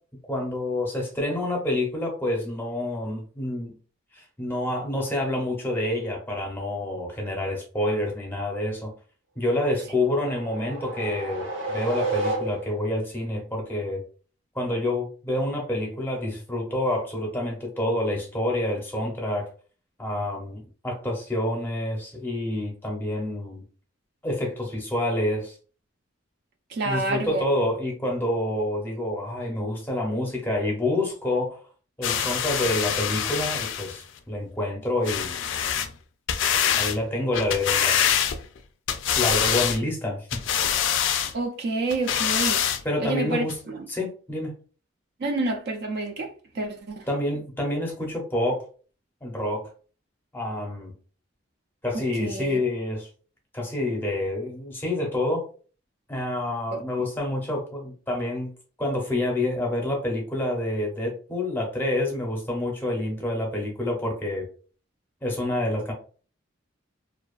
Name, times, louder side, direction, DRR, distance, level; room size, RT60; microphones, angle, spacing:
voice 1, 0.3-3.7 4.1-8.9 9.4-14.0 14.5-19.5 20.0-23.6 24.2-25.5 26.8-31.6 32.0-35.4 36.8-38.1 39.1-40.4 42.8-43.6 43.9-44.5 47.1-48.6 49.2-49.7 50.3-50.9 51.8-53.1 53.5-55.5 56.1-58.5 58.8-64.5 65.2-65.9, left 1 dB, 10° left, 0.6 m, -28 dB
sound 1, 9.7-12.9, right 3 dB, 75° right, 1.0 m, -31 dB
voice 2, 26.7-27.4 41.3-42.6 43.0-43.8 45.2-47.1 51.9-52.6 56.7-56.8, right 3 dB, 55° right, 0.3 m, -29 dB
sound 2, 32.0-34.0 35.1-35.9 36.3-37.0 37.3-38.6 38.9-39.8 40.3-41.3 41.9-42.8 43.5-43.6, left 9 dB, 70° left, 0.3 m, -25 dB
2.5 x 2.2 x 2.3 m
head